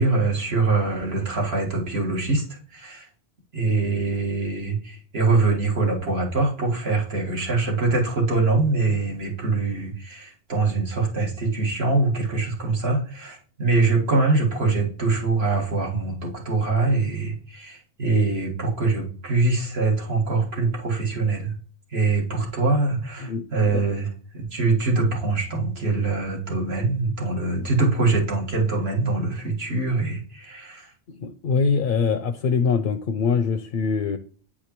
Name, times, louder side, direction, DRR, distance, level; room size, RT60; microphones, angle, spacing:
voice 1, 0.0-3.1 3.5-21.5 21.9-24.1 24.3-30.9, right 3 dB, 70° right, -1 dB, 1.9 m, -23 dB
voice 2, 23.2-23.8 27.5-27.7 31.2-34.2, left 5 dB, 60° left, 9 dB, 0.7 m, -23 dB
8.6 x 4.8 x 3.0 m, 0.43 s
omnidirectional pair, 1.1 m